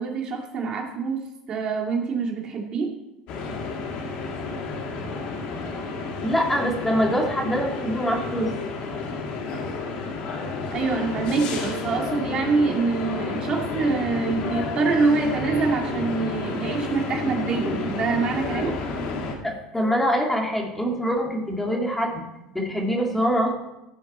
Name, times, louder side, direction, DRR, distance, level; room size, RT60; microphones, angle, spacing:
voice 1, 0.0-2.9 10.7-18.7, right 4 dB, 45° right, 1 dB, 2.1 m, -25 dB
sound 1, 3.3-19.3, left 3 dB, 60° left, 2.2 m, -30 dB
voice 2, 6.2-8.5 19.4-22.2 22.5-23.5, equal, 10° left, 0 dB, 2.4 m, -24 dB
14.5 x 7.0 x 4.3 m, 0.92 s
supercardioid pair, 105°, 2 cm